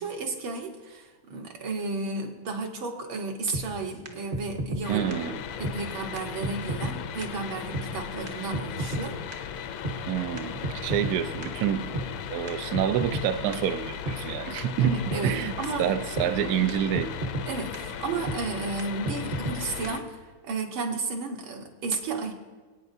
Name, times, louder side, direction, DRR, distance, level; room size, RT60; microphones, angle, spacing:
voice 1, 0.0-5.2 5.6-9.2 14.8-15.9 16.4-16.7 17.5-22.3, right 3 dB, 70° right, 2 dB, 2.1 m, -33 dB
sound 1, 3.5-3.6 4.0-4.1 4.3-4.8 5.1-5.2 5.6-5.7 6.2-6.3 6.4-6.9 7.2-7.3 7.7-7.9 8.3-8.4 8.5-9.0 9.3-9.4 9.8-10.0 10.4-11.1 11.4-11.5 11.9-12.1 12.5-12.6 12.7-13.2 13.5-13.6 14.1-14.2 14.6-14.7 14.8-15.4 15.6-15.7 16.2-16.3 16.7-16.8 16.9-17.5 17.7-17.8 18.3-18.4 18.8-18.9 19.1-19.6 19.8-19.9, right 1 dB, 35° right, 0.7 m, -31 dB
sound 2, 4.8-20.0, left 8 dB, 75° left, 1.3 m, -37 dB
voice 2, 4.9-5.4 10.1-12.0 12.3-15.5 15.8-17.1, right 10 dB, 90° right, 8 dB, 0.8 m, -27 dB
26.0 x 9.0 x 2.7 m, 1.3 s
omnidirectional pair, 2.3 m